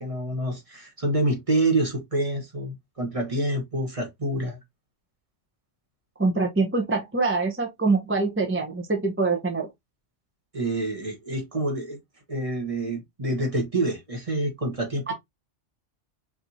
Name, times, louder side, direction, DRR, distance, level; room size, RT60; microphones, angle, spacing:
voice 1, 0.0-4.6 10.5-12.0 12.3-15.1, right 1 dB, 30° right, 1.1 m, -27 dB
voice 2, 6.2-9.7 15.1-15.2, right 3 dB, 15° right, 0.7 m, -24 dB
4.6 x 2.7 x 2.7 m
omnidirectional pair, 1.2 m